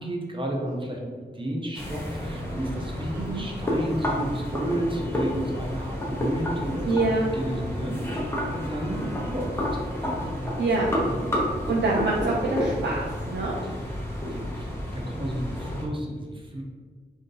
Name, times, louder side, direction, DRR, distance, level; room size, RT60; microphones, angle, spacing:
voice 1, 0.0-7.1 7.3-11.2 11.7-11.9 13.7-16.6, right 1 dB, 30° right, -1 dB, 0.6 m, -33 dB
sound 1, 1.7-15.8, equal, 15° left, 0.7 m, -30 dB
voice 2, 3.1-3.5 6.8-7.3 10.6-10.9 11.7-13.5, right 2 dB, 80° right, -4 dB, 0.6 m, -25 dB
3.7 x 2.6 x 3.8 m, 1.5 s
wide cardioid pair, 145°, 18 cm